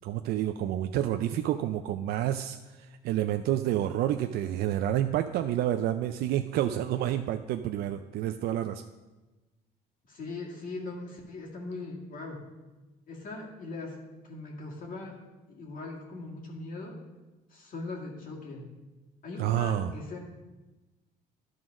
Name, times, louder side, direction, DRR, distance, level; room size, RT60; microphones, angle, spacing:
voice 1, 0.0-8.8 19.4-19.9, right 12 dB, 70° right, 7 dB, 0.4 m, -29 dB
voice 2, 10.1-12.4 13.1-14.0 14.3-15.2 15.5-17.0 17.5-18.7 19.2-20.2, left 3 dB, 55° left, -1 dB, 1.9 m, -40 dB
11.0 x 3.8 x 6.0 m, 1.1 s
cardioid pair, 110°, 17 cm